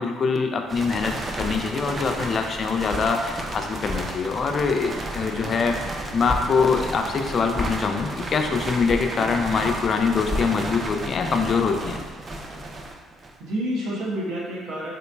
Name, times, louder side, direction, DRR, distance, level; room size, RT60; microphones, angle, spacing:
voice 1, 0.0-5.7 6.1-12.0, left 5 dB, 45° left, 4 dB, 0.4 m, -24 dB
sound 1, 0.7-10.4, left 2 dB, 5° left, 0.8 m, -36 dB
sound 2, 0.7-13.5, right 2 dB, 35° right, 0.4 m, -33 dB
voice 2, 5.2-5.6 9.1-9.2 13.4-14.9, equal, 75° right, -4 dB, 0.9 m, -29 dB
3.8 x 2.9 x 2.2 m, 1.4 s
supercardioid pair, 70°, 0 cm